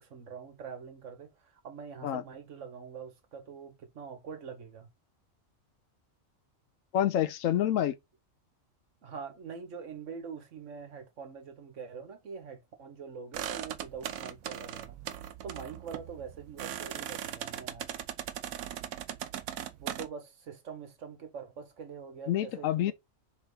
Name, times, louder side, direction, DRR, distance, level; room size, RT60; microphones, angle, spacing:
voice 1, 0.0-4.9 9.0-15.0 15.4-17.9 19.8-22.9, right 6 dB, 65° right, 1.3 m, -44 dB
voice 2, 6.9-7.9 22.3-22.9, left 11 dB, 75° left, 0.9 m, -27 dB
sound 1, 13.3-20.1, right 10 dB, 90° right, 1.0 m, -39 dB
3.7 x 3.3 x 3.8 m
omnidirectional pair, 1.4 m